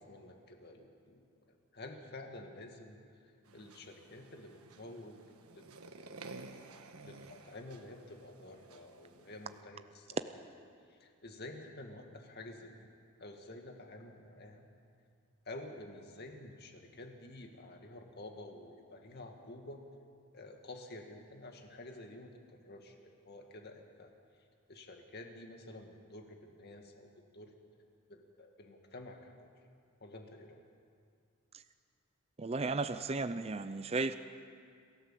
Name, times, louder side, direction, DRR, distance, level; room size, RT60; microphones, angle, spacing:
voice 1, 0.0-3.0 3.2-5.2 5.5-6.2 7.0-10.5 10.9-12.9 13.2-14.6 15.5-19.8 20.3-24.1 24.7-27.5 28.1-29.5 30.0-30.6, left 2 dB, 50° left, 3 dB, 2.2 m, -50 dB
sound 1, 3.4-9.6, right 3 dB, 85° right, 1.4 m, -53 dB
voice 2, 32.4-34.1, right 3 dB, 30° right, 11 dB, 0.5 m, -34 dB
27.5 x 15.0 x 7.6 m, 2.3 s
head